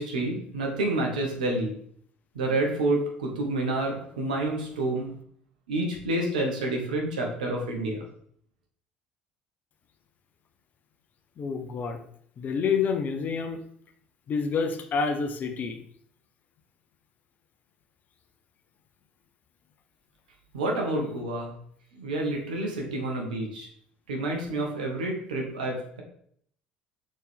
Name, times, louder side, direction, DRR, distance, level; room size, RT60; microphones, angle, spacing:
voice 1, 0.0-1.7 2.3-5.1 5.7-8.0 20.5-21.5 21.9-23.7 24.1-26.0, right 2 dB, 75° right, 0 dB, 1.3 m, -29 dB
voice 2, 11.4-12.0 12.4-13.6 14.3-15.8, left 5 dB, 40° left, 6 dB, 0.8 m, -28 dB
6.2 x 4.3 x 3.5 m, 0.64 s
figure-of-eight pair, 60°, 4 cm